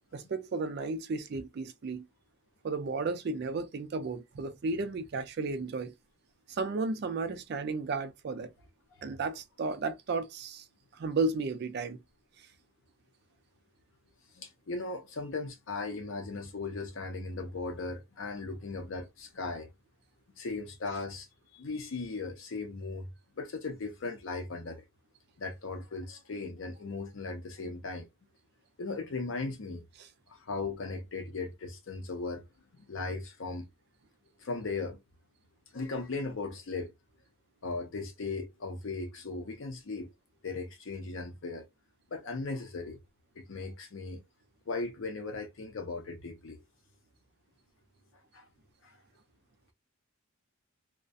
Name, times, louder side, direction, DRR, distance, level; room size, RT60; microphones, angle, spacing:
voice 1, 0.1-2.1 2.6-5.9 6.5-8.5 9.0-10.6 10.9-12.0 12.4-12.5, right 3 dB, 50° right, 0.4 m, -33 dB
voice 2, 14.3-19.7 20.4-21.3 21.5-23.1 23.4-24.8 25.4-28.1 28.8-29.8 30.3-32.5 32.7-33.7 34.4-35.0 35.7-36.9 37.6-40.1 40.4-41.6 42.1-43.0 43.4-44.2 44.7-46.6 48.3-48.4 48.8-49.0, left 3 dB, 70° left, 0.6 m, -37 dB
2.3 x 2.1 x 2.5 m
head